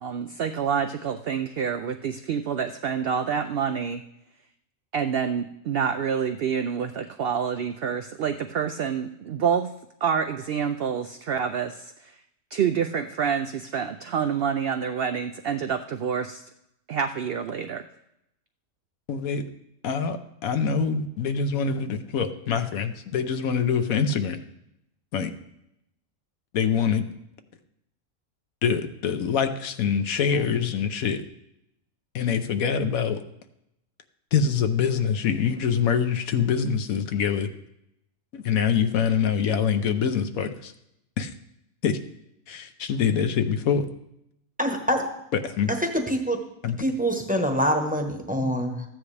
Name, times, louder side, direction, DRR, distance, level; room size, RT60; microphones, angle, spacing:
voice 1, 0.0-4.0 4.9-9.7 10.0-12.1 12.5-16.4 16.9-17.8, right 7 dB, 70° right, 7 dB, 0.5 m, -27 dB
voice 2, 19.1-19.4 19.8-24.4 25.1-25.3 26.5-27.1 28.6-31.2 32.1-33.2 34.3-37.5 38.3-40.7 41.2-41.3 41.8-42.0 42.5-43.9 45.3-45.7 46.6-46.8, left 6 dB, 75° left, 8 dB, 1.2 m, -25 dB
voice 3, 44.6-45.1 45.8-46.4 46.8-48.8, equal, 5° right, 4 dB, 0.9 m, -25 dB
14.0 x 9.4 x 3.3 m, 0.81 s
omnidirectional pair, 1.5 m